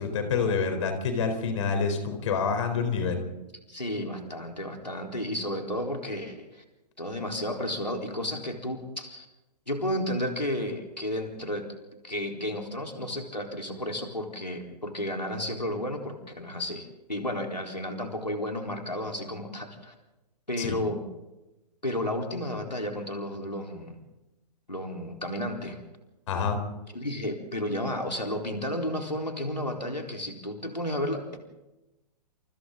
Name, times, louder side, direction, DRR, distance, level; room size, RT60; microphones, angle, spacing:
voice 1, 0.0-3.2 20.6-20.8 26.3-26.6, left 5 dB, 45° left, 7 dB, 4.1 m, -27 dB
voice 2, 3.7-6.6 7.0-9.3 9.7-11.7 12.0-19.9 20.5-21.0 21.8-24.0 24.7-25.8 26.9-31.4, left 1 dB, 85° left, 2 dB, 4.0 m, -32 dB
29.5 x 28.0 x 3.9 m, 0.99 s
figure-of-eight pair, 115°, 21 cm